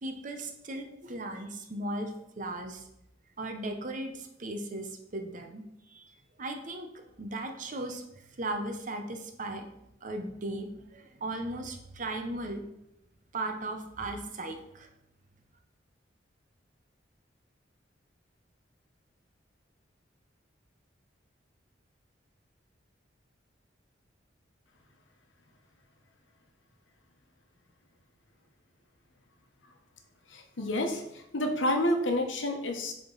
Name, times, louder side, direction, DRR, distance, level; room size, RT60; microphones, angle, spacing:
voice 1, 0.0-2.8 3.4-6.1 6.4-6.9 7.2-9.7 10.0-12.6 13.3-14.9, right 2 dB, 45° right, 5 dB, 0.8 m, -37 dB
voice 2, 30.3-32.9, left 1 dB, 90° left, 4 dB, 1.0 m, -29 dB
8.0 x 3.7 x 3.9 m, 0.82 s
head